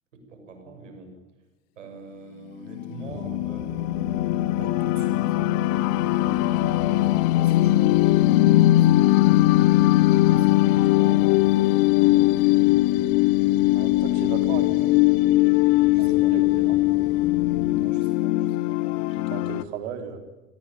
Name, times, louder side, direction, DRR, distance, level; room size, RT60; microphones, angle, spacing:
voice 1, 0.1-1.2 1.8-4.0 4.6-5.4 6.1-9.4 10.1-12.7 15.9-16.4 17.8-19.0, right 2 dB, 70° right, 6 dB, 7.0 m, -44 dB
sound 1, 2.6-19.6, left 17 dB, 40° left, 1.1 m, -20 dB
sound 2, 3.1-17.9, equal, ahead, 3.0 m, -41 dB
voice 2, 13.7-14.8 16.0-16.8 19.3-20.2, right 7 dB, 55° right, 7 dB, 4.4 m, -36 dB
28.0 x 20.5 x 9.2 m, 1.0 s
figure-of-eight pair, 80°, 39 cm